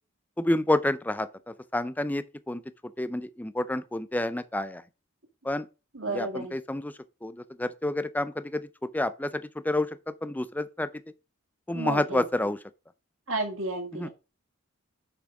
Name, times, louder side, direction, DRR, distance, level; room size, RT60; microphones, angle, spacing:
voice 1, 0.4-1.3 1.7-2.6 3.0-4.8 5.4-5.7 6.1-6.9 7.2-8.7 8.9-9.9 10.2-10.9 11.7-12.6 13.9-14.1, left 1 dB, 10° left, 0.4 m, -29 dB
voice 2, 5.9-6.6 11.7-12.2 13.3-14.1, right 2 dB, 70° right, 1.9 m, -32 dB
6.6 x 6.1 x 4.8 m
head